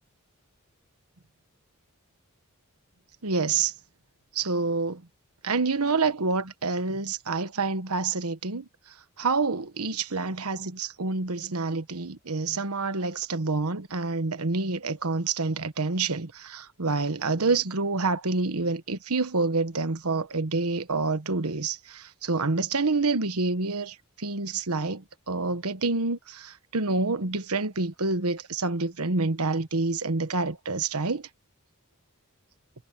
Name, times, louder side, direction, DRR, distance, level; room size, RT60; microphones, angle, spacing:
voice 1, 3.2-3.7 4.3-5.0 5.4-8.7 9.2-31.3, right 3 dB, 85° right, 1.3 m, -27 dB
head